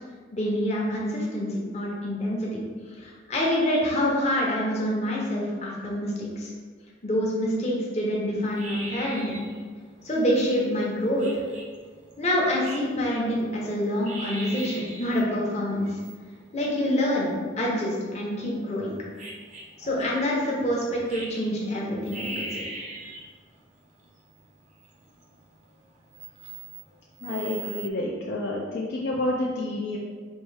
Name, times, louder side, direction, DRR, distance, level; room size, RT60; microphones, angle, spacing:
voice 1, 0.3-2.6 3.0-6.5 7.0-9.4 10.0-11.4 12.2-15.9 16.5-17.3 17.6-18.9 19.8-22.6, equal, 35° left, -3 dB, 0.8 m, -26 dB
sound 1, 8.5-27.9, right 2 dB, 35° right, 0.6 m, -42 dB
voice 2, 27.2-30.0, left 2 dB, 55° left, -2 dB, 0.4 m, -29 dB
4.4 x 2.6 x 3.3 m, 1.5 s
head